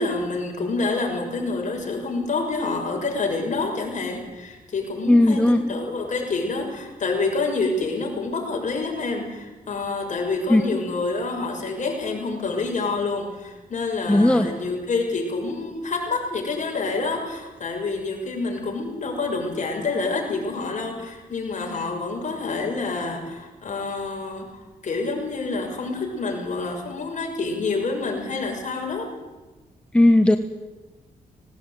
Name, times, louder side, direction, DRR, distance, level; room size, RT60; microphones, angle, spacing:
voice 1, 0.0-24.5 24.8-29.1, left 3 dB, 55° left, 1 dB, 6.6 m, -27 dB
voice 2, 5.1-5.6 10.5-10.6 14.1-14.5 29.9-30.4, left 1 dB, 5° left, 7 dB, 1.3 m, -16 dB
18.5 x 18.5 x 9.3 m, 1.2 s
cardioid pair, 80°, 15 cm